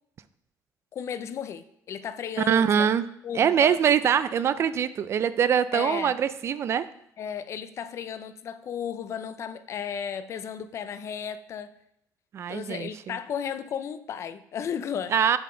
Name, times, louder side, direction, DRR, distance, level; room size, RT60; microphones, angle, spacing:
voice 1, 0.9-2.9 3.2-3.8 4.3-4.7 5.7-6.1 7.2-11.7 12.5-15.2, left 8 dB, 45° left, 12 dB, 0.5 m, -34 dB
voice 2, 2.4-3.0 3.4-6.9 12.3-13.2 15.1-15.4, right 8 dB, 45° right, 14 dB, 0.3 m, -23 dB
6.9 x 5.7 x 3.8 m, 0.76 s
cardioid pair, 135°, 6 cm